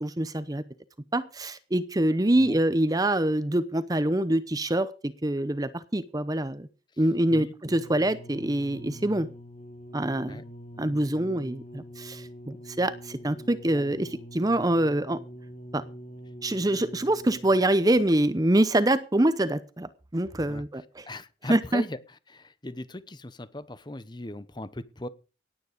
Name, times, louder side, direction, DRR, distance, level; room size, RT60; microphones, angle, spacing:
voice 1, 0.0-0.6 1.1-6.7 7.0-9.3 9.9-10.4 10.8-15.2 15.7-15.8 16.4-21.0 21.5-21.8, right 1 dB, 20° right, 0.7 m, -25 dB
sound 1, 7.7-17.8 18.6-18.7, equal, 40° left, 2.5 m, -44 dB
voice 2, 20.4-22.0 22.3-25.1, left 1 dB, 25° left, 0.9 m, -39 dB
17.5 x 9.5 x 5.1 m
head